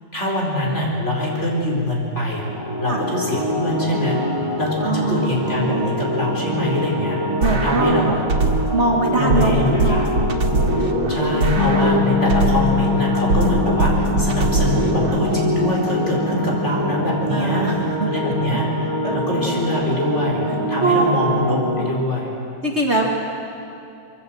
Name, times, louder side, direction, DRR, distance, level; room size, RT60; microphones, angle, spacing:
voice 1, 0.1-2.5 2.8-4.2 4.6-8.1 9.2-10.1 11.1-17.7 18.1-22.3, left 2 dB, 35° left, -2 dB, 5.2 m, -24 dB
sound 1, 2.5-21.9, equal, 15° right, 2.2 m, -25 dB
voice 2, 4.8-5.9 7.4-8.2 8.7-10.0 17.3-18.1 19.0-19.2 20.8-21.2 22.6-23.1, right 3 dB, 35° right, -1 dB, 2.2 m, -22 dB
sound 2, 7.4-8.8 9.3-12.8 13.3-15.4, right 2 dB, 90° right, 2.6 m, -21 dB
Bass guitar, 11.6-17.8, left 6 dB, 85° left, 3.2 m, -25 dB
25.5 x 23.0 x 7.8 m, 2.5 s
omnidirectional pair, 2.0 m